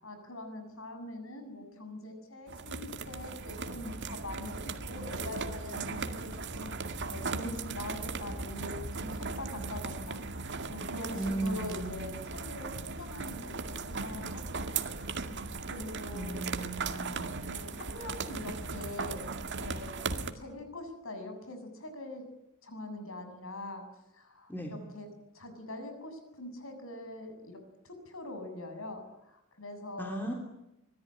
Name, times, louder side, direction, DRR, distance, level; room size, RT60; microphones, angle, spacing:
voice 1, 0.0-14.6 15.6-16.4 17.4-19.3 19.6-22.2 22.6-23.8 24.1-25.1 25.3-27.6 27.8-30.4, left 1 dB, 70° left, 7 dB, 7.5 m, -43 dB
sound 1, 2.5-20.3, right 4 dB, 55° right, 2.2 m, -38 dB
voice 2, 11.1-12.1 16.1-17.3 24.5-24.7 30.0-30.3, right 2 dB, 10° left, 1 dB, 3.3 m, -36 dB
25.0 x 21.0 x 10.0 m, 0.89 s
head